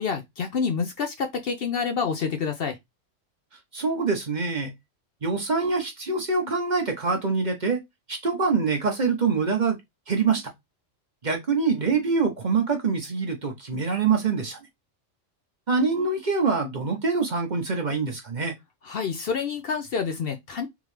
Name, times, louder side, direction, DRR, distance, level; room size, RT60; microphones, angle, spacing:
voice 1, 0.0-2.8 18.9-20.7, left 5 dB, 60° left, 0.7 m, -28 dB
voice 2, 3.7-4.7 5.2-7.8 8.1-9.8 10.1-10.4 11.2-14.6 15.7-18.5, right 4 dB, 40° right, 0.9 m, -25 dB
3.6 x 3.1 x 3.1 m
omnidirectional pair, 1.3 m